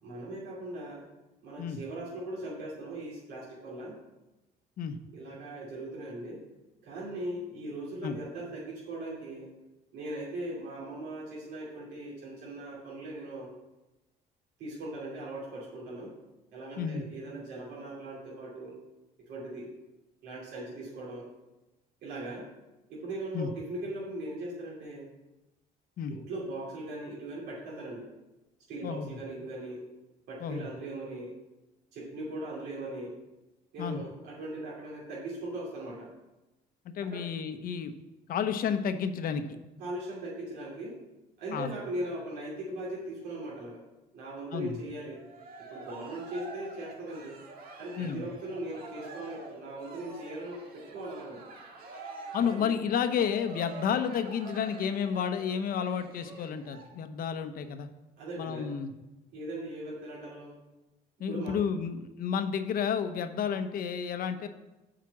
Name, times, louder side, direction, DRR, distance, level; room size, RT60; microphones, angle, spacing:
voice 1, 0.0-1.1 1.4-4.0 5.1-6.4 6.8-9.5 9.9-13.5 14.6-16.1 16.5-18.8 19.3-19.7 20.2-21.3 22.0-22.5 22.9-25.1 26.1-28.1 28.7-29.8 30.3-31.3 31.9-33.1 33.7-36.1 37.1-37.3 39.8-41.0 41.4-43.8 44.1-45.2 45.7-47.4 47.8-51.4 52.4-52.7 58.2-58.7 59.3-60.6 61.3-61.6, right 1 dB, 75° right, -6 dB, 2.7 m, -39 dB
voice 2, 28.8-29.2 30.4-30.7 33.8-34.0 36.8-37.9 38.3-39.4 41.5-41.7 44.5-44.8 48.0-48.2 52.3-57.9 58.4-58.9 61.2-64.5, left 7 dB, 60° left, 9 dB, 0.8 m, -31 dB
Cheering, 45.1-56.8, right 3 dB, 60° right, 1.7 m, -46 dB
7.6 x 5.1 x 7.1 m, 1.0 s
cardioid pair, 110°, 17 cm